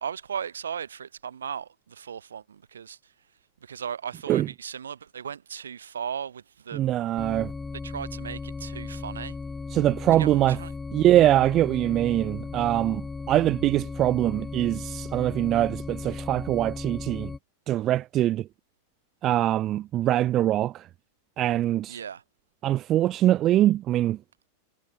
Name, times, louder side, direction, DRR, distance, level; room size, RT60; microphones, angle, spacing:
voice 1, 0.0-3.1 3.6-6.9 7.8-9.4 10.2-10.7 21.9-22.2, right 7 dB, 70° right, 1.9 m, -36 dB
voice 2, 6.7-7.5 9.7-10.6 10.9-13.0 13.3-17.3 17.7-18.4 19.2-20.8 21.4-22.0 22.6-24.2, right 13 dB, 30° right, 0.5 m, -23 dB
sound 1, 7.2-17.4, left 4 dB, 10° left, 5.1 m, -36 dB
figure-of-eight pair, 90°, 0 cm